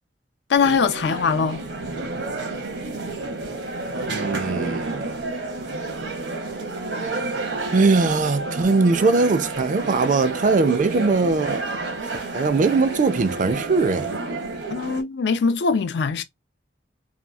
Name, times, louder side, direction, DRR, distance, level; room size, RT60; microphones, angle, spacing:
voice 1, 0.5-1.6 14.7-16.2, left 5 dB, 65° left, 0.4 m, -21 dB
sound 1, 0.5-15.0, right 3 dB, 80° right, 0.8 m, -30 dB
voice 2, 4.1-5.1 7.7-11.6 12.3-14.1, right 3 dB, 45° right, 0.4 m, -20 dB
2.9 x 2.3 x 2.3 m
head